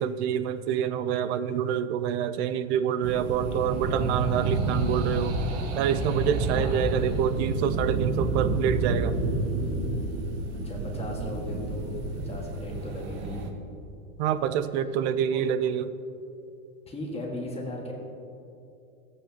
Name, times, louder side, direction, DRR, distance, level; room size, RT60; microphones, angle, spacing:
voice 1, 0.0-5.4 5.8-9.1 14.2-15.9, right 9 dB, 50° right, 12 dB, 0.6 m, -27 dB
sound 1, 3.0-13.5, right 3 dB, 35° right, 1.1 m, -29 dB
voice 2, 6.5-7.1 10.5-13.4 15.2-15.4 16.9-17.9, left 1 dB, 15° left, -1 dB, 1.6 m, -37 dB
15.0 x 8.4 x 2.9 m, 2.8 s
supercardioid pair, 130°, 42 cm